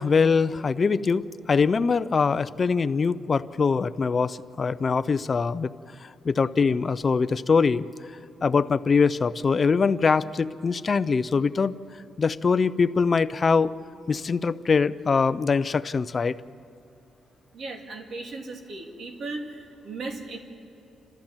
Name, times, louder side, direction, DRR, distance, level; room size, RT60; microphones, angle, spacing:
voice 1, 0.0-5.7 6.0-7.9 8.4-11.7 12.2-13.7 14.1-16.4, left 5 dB, 30° left, 13 dB, 0.5 m, -23 dB
voice 2, 17.5-20.4, right 3 dB, 55° right, 3 dB, 2.5 m, -36 dB
29.5 x 14.0 x 7.4 m, 2.6 s
cardioid pair, 145°, 0 cm